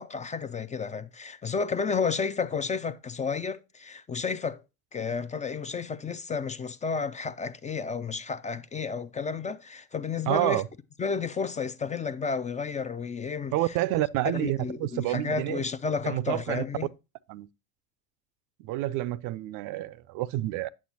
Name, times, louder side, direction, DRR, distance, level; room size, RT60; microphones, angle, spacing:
voice 1, 0.0-4.6 4.9-10.6 11.0-13.5 14.3-16.9, left 5 dB, 20° left, 0.5 m, -31 dB
voice 2, 10.3-10.7 13.5-15.6 16.0-16.6 17.3-17.5 18.6-20.7, right 15 dB, 55° right, 0.5 m, -29 dB
8.6 x 7.2 x 2.8 m
hypercardioid pair, 75°, 38 cm